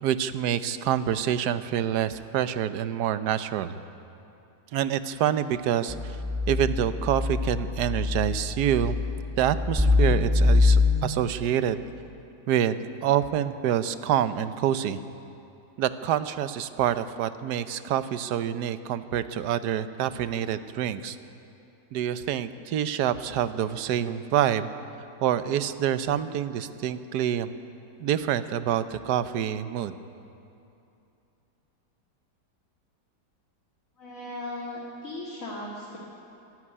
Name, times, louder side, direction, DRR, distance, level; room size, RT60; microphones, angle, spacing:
voice 1, 0.0-3.8 4.7-6.2 6.5-9.0 9.4-11.8 12.5-15.0 15.8-21.2 21.9-24.7 25.2-27.5 28.0-30.0, right 10 dB, 70° right, 12 dB, 1.3 m, -27 dB
sound 1, 5.9-11.0, left 3 dB, 5° right, 1.2 m, -24 dB
voice 2, 34.0-36.0, left 1 dB, 50° left, -5 dB, 2.9 m, -37 dB
25.5 x 11.0 x 9.9 m, 2.7 s
omnidirectional pair, 1.9 m